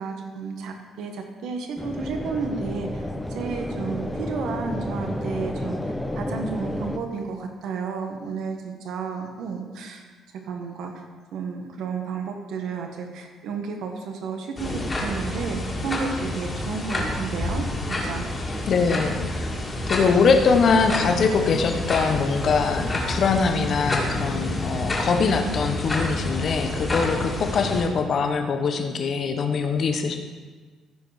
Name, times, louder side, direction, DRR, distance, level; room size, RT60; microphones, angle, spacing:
voice 1, 0.0-10.0 10.5-11.0 11.3-17.6 18.0-18.2 18.8-19.0, right 5 dB, 75° right, 4 dB, 1.3 m, -32 dB
sound 1, 1.8-7.0, left 1 dB, 10° left, 0.8 m, -31 dB
sound 2, 14.6-27.9, left 1 dB, 25° left, 2.2 m, -28 dB
voice 2, 18.7-19.2 19.9-30.2, left 5 dB, 50° left, 6 dB, 1.1 m, -22 dB
14.5 x 5.0 x 5.0 m, 1.4 s
cardioid pair, 110°, 0 cm